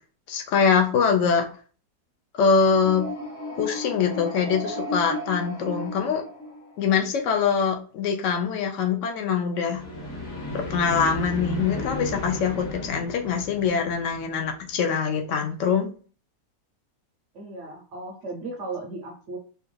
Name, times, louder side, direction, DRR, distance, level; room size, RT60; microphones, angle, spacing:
voice 1, 0.3-1.5 2.3-3.0 3.6-6.2 6.8-9.8 10.5-15.9, left 6 dB, 70° left, 4 dB, 0.7 m, -23 dB
sound 1, 2.7-7.0 9.6-14.6, left 1 dB, 45° left, 1.3 m, -34 dB
voice 2, 17.3-19.4, right 2 dB, 60° right, 1 dB, 0.8 m, -36 dB
4.5 x 2.3 x 3.1 m, 0.40 s
omnidirectional pair, 1.9 m